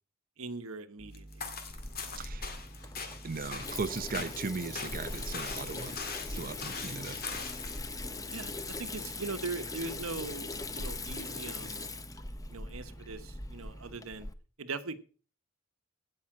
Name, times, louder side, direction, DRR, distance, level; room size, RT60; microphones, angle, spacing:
voice 1, 0.4-1.5 2.1-2.2 8.3-11.9 12.5-14.3 14.6-15.0, right 3 dB, 80° right, 1.2 m, -40 dB
sound 1, 1.0-14.0, right 1 dB, 10° right, 1.1 m, -50 dB
sound 2, 1.1-7.8, left 5 dB, 45° left, 2.0 m, -42 dB
Water tap faucet / Sink (filling or washing), 1.7-14.3, left 3 dB, 15° left, 0.7 m, -41 dB
voice 2, 3.2-6.0 6.3-7.2, right 4 dB, 45° right, 0.7 m, -37 dB
16.5 x 5.7 x 6.0 m
head